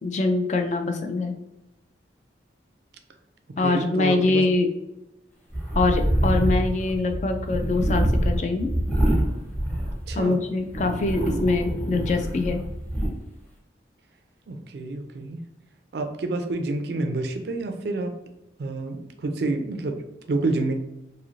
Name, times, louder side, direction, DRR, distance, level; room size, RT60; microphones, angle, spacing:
voice 1, 0.0-1.4 3.6-4.7 5.7-8.7 10.1-12.6, left 3 dB, 40° left, 5 dB, 0.3 m, -24 dB
voice 2, 3.6-4.4 10.1-10.4 14.5-15.4 15.9-18.1 18.6-20.0 20.3-20.7, right 2 dB, 65° right, 6 dB, 0.4 m, -28 dB
sound 1, 5.5-10.3 10.7-13.1, right 1 dB, 10° left, 0.7 m, -25 dB
3.1 x 2.6 x 2.5 m, 0.90 s
head